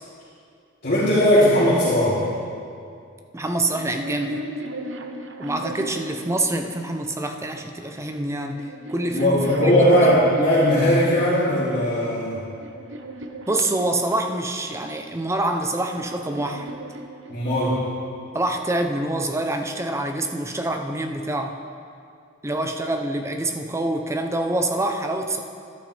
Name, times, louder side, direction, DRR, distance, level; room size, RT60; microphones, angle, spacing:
voice 1, 0.8-2.3 9.1-12.4 17.3-17.8, equal, 55° left, -13 dB, 3.0 m, -18 dB
voice 2, 3.3-4.5 5.4-9.8 13.5-16.7 18.3-21.6 22.4-25.4, right 1 dB, 15° right, 5 dB, 0.6 m, -26 dB
sound 1, 3.6-7.0 8.0-11.4 12.0-14.4 15.5-17.9, right 1 dB, 70° right, 0.7 m, -36 dB
12.5 x 11.0 x 3.4 m, 2.4 s
head